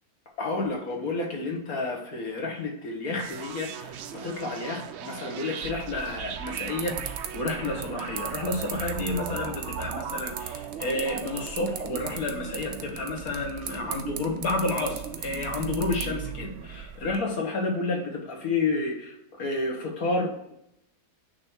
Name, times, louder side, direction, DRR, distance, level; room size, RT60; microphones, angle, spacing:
voice 1, 0.4-20.5, left 2 dB, 65° left, 1 dB, 1.8 m, -30 dB
sound 1, 3.2-16.8, right 8 dB, 70° right, 0.6 m, -39 dB
sound 2, 5.6-17.2, right 8 dB, 90° right, 1.3 m, -39 dB
8.8 x 3.2 x 4.4 m, 0.80 s
omnidirectional pair, 1.6 m